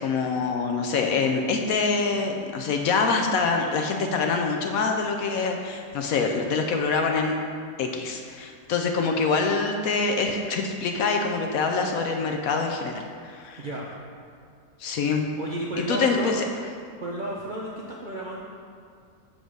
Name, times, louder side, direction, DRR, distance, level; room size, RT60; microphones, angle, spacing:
voice 1, 0.0-7.3 7.8-12.9 13.2-13.6 14.8-15.3 15.9-16.3, left 4 dB, 70° left, 3 dB, 0.9 m, -25 dB
voice 2, 13.6-13.9 15.4-16.4 17.0-18.4, right 1 dB, 55° right, -4 dB, 0.5 m, -32 dB
7.1 x 3.8 x 6.2 m, 2.2 s
omnidirectional pair, 1.8 m